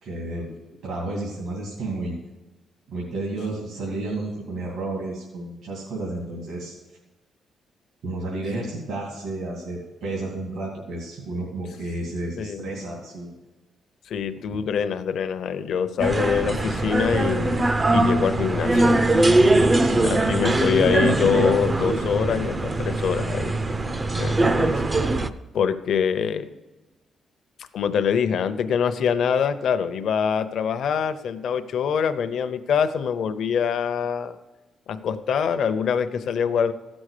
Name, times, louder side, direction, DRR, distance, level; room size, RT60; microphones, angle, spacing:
voice 1, 0.0-0.5 0.8-2.2 2.9-6.8 8.0-13.3 17.9-18.2 19.8-20.2, right 2 dB, 75° right, -3 dB, 2.6 m, -32 dB
voice 2, 12.4-12.7 14.1-18.9 19.9-23.6 24.1-24.7 25.5-26.5 27.7-34.4 34.9-36.7, left 7 dB, 60° left, 10 dB, 0.7 m, -24 dB
sound 1, 16.0-25.3, right 2 dB, 20° right, 0.4 m, -21 dB
15.0 x 6.3 x 6.6 m, 1.1 s
cardioid pair, 165°, 0 cm